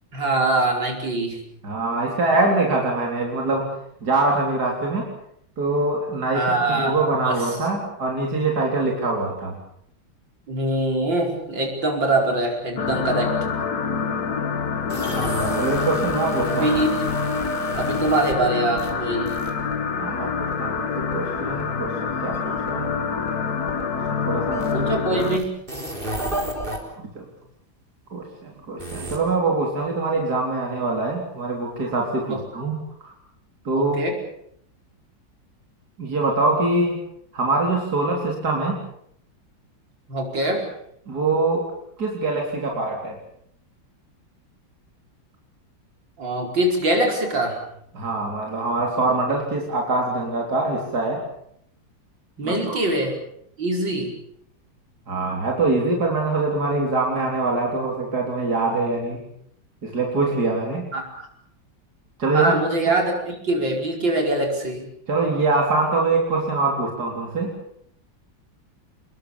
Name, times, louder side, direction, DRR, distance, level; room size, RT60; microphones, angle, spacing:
voice 1, 0.1-1.4 6.3-7.4 10.5-13.3 16.5-16.9 17.7-19.3 24.7-25.5 32.3-32.4 33.8-34.2 40.1-40.7 46.2-47.6 52.4-53.2 53.6-54.1 60.9-61.3 62.3-63.1 63.4-64.9, right 2 dB, 70° right, 1 dB, 5.8 m, -23 dB
voice 2, 1.6-3.7 4.0-5.1 5.6-9.6 15.1-16.7 20.0-22.9 24.1-24.9 27.0-27.3 28.1-33.1 33.6-34.0 36.0-37.0 37.3-38.7 41.1-41.6 42.0-43.2 47.9-51.2 52.4-52.8 55.1-59.2 59.8-60.9 62.2-62.5 65.1-67.5, right 3 dB, 55° right, 0 dB, 4.3 m, -24 dB
sound 1, 12.8-25.4, left 6 dB, 55° left, 1.9 m, -26 dB
sound 2, 14.9-18.5 18.8-19.8 20.4-24.1 24.5-26.8 28.8-29.2, right 1 dB, 25° right, 4.5 m, -32 dB
28.0 x 21.0 x 7.1 m, 0.70 s
omnidirectional pair, 2.1 m